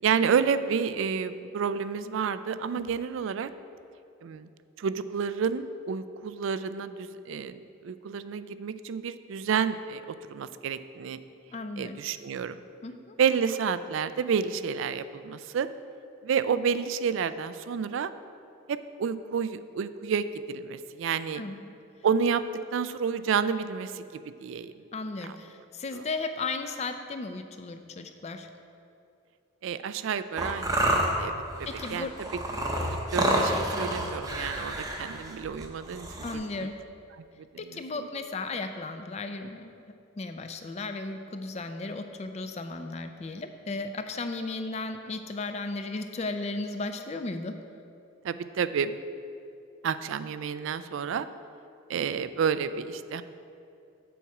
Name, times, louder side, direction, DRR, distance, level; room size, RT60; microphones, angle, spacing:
voice 1, 0.0-3.5 4.2-4.5 4.8-11.2 11.8-12.6 13.2-15.7 16.2-18.1 18.7-21.4 22.0-22.4 22.7-24.7 25.2-25.3 25.9-26.0 29.6-32.1 33.1-36.7 37.1-38.1 48.2-48.9 49.8-51.3 51.9-53.2, right 6 dB, 65° right, 13 dB, 0.3 m, -30 dB
voice 2, 11.5-12.0 12.8-13.1 21.3-21.6 24.9-28.5 31.7-32.1 36.2-36.7 37.6-39.7 40.2-47.6, left 3 dB, 30° left, 7 dB, 0.4 m, -35 dB
sound 1, 30.4-36.3, right 1 dB, 15° right, 0.7 m, -29 dB
7.2 x 7.0 x 4.8 m, 2.6 s
head